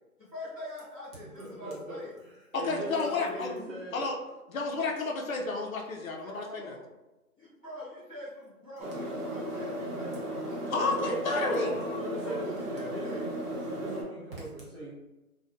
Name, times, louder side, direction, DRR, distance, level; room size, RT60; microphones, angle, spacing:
voice 1, 0.3-2.2 2.7-3.5 6.2-6.9 7.4-11.1 12.2-13.3, left 1 dB, ahead, -29 dB, 0.7 m, -44 dB
voice 2, 1.2-4.1 10.7-13.2 13.6-14.9, right 1 dB, 40° right, -8 dB, 1.0 m, -39 dB
voice 3, 2.5-3.5 3.9-4.2 4.5-6.8 10.7-11.8, left 3 dB, 65° left, 0 dB, 0.5 m, -31 dB
sound 1, 8.8-14.0, equal, 85° right, 0.8 m, -35 dB
2.2 x 2.2 x 2.6 m, 1.0 s
hypercardioid pair, 160°, 45 cm